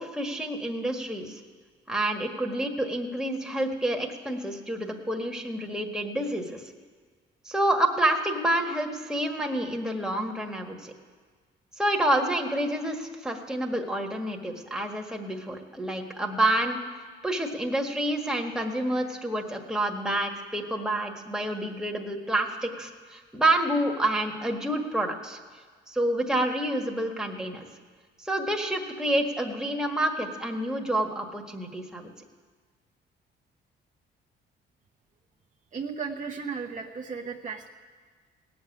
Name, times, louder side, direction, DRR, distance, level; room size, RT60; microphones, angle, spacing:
voice 1, 0.0-1.4 1.9-6.6 7.4-10.9 11.8-16.8 17.2-25.4 25.9-27.7 28.2-32.1, right 1 dB, 5° right, 1 dB, 1.7 m, -28 dB
voice 2, 35.7-37.7, right 5 dB, 40° right, 1 dB, 1.0 m, -35 dB
17.0 x 7.1 x 9.5 m, 1.5 s
cardioid pair, 90°, 20 cm